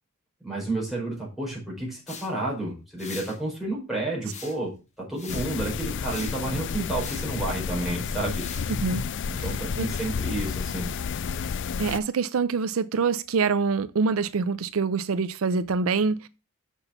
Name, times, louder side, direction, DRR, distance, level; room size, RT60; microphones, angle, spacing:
voice 1, 0.4-8.5 9.3-10.9, right 2 dB, ahead, 4.6 m, -31 dB
sound 1, 2.1-2.3 3.0-3.4 4.2-4.7 5.1-5.5 6.1-6.4 7.0-7.3 8.2-8.8, left 5 dB, 35° left, 1.7 m, -42 dB
sound 2, 5.3-12.0, left 6 dB, 60° left, 0.4 m, -31 dB
voice 2, 8.7-9.1 9.8-9.9 11.8-16.3, right 5 dB, 75° right, 0.5 m, -25 dB
6.7 x 6.1 x 5.7 m
head